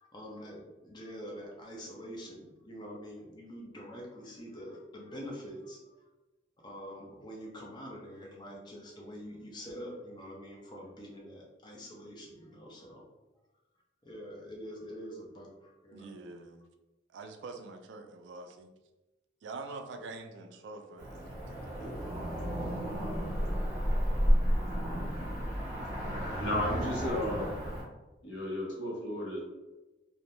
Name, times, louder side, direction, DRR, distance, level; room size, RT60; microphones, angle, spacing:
voice 1, 0.0-5.8 6.6-13.0 14.0-16.1, equal, 25° left, -2 dB, 0.5 m, -45 dB
voice 2, 15.9-16.6 17.1-18.7 19.4-21.9, right 3 dB, 75° right, 6 dB, 0.3 m, -45 dB
Cricket / Motor vehicle (road), 21.0-27.8, equal, 15° right, 0.8 m, -31 dB
voice 3, 26.4-27.5 28.2-29.4, left 1 dB, 80° left, -3 dB, 0.8 m, -33 dB
2.5 x 2.0 x 3.0 m, 1.1 s
head